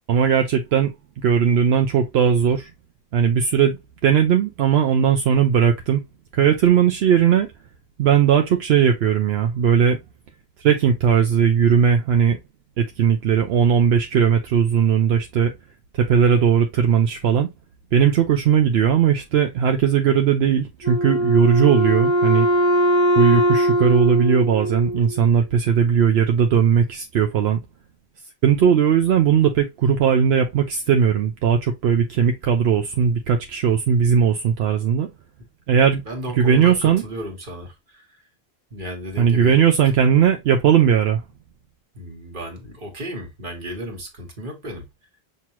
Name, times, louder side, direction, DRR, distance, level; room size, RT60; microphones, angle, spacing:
voice 1, 0.1-2.7 3.1-6.0 6.3-7.5 8.0-10.0 10.6-12.4 12.8-15.5 15.9-17.5 17.9-22.5 23.2-27.6 28.4-35.1 35.7-36.0 36.4-37.0 39.2-41.2, right 8 dB, 80° right, 0.8 m, -18 dB
Wind instrument woodwind instrument, 20.8-25.3, equal, 30° left, 0.8 m, -20 dB
voice 2, 36.1-38.1 38.7-39.6 41.9-44.8, equal, 55° right, 1.5 m, -34 dB
5.9 x 2.8 x 2.8 m
omnidirectional pair, 1.0 m